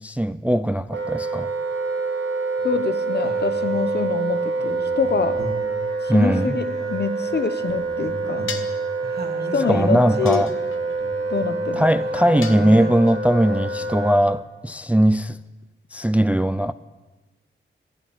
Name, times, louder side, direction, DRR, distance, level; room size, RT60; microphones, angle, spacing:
voice 1, 0.0-1.5 6.1-6.6 9.7-10.5 11.7-15.4 15.9-16.7, right 1 dB, 5° right, 0.3 m, -19 dB
Wind instrument woodwind instrument, 0.9-14.3, right 3 dB, 70° right, 1.6 m, -26 dB
voice 2, 2.6-5.4 6.0-8.5 9.5-10.4 11.3-11.8, left 5 dB, 55° left, 0.9 m, -25 dB
sound 1, 2.6-2.8 3.2-4.1 4.6-7.3 7.6-13.2 13.5-14.0, right 1 dB, 55° right, 1.7 m, -37 dB
sound 2, 8.5-8.9 10.2-11.0 12.4-13.1, left 5 dB, 85° left, 1.0 m, -35 dB
12.0 x 7.2 x 9.0 m
cardioid pair, 70°, 20 cm